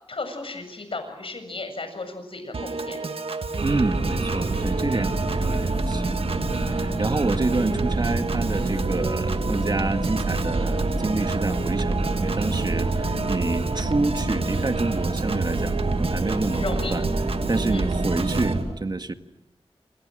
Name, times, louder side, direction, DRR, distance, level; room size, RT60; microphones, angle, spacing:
voice 1, 0.1-3.0 16.6-17.0 17.7-17.9, left 3 dB, 65° left, 7 dB, 7.5 m, -34 dB
Piano / Organ, 2.5-18.5, right 3 dB, 70° right, 1.8 m, -32 dB
voice 2, 3.6-6.2 6.5-17.0 17.5-19.1, right 3 dB, 45° right, 8 dB, 1.9 m, -28 dB
sound 1, 3.6-18.6, right 2 dB, 90° right, 7.0 m, -27 dB
28.0 x 28.0 x 6.4 m, 0.96 s
wide cardioid pair, 65°, 10 cm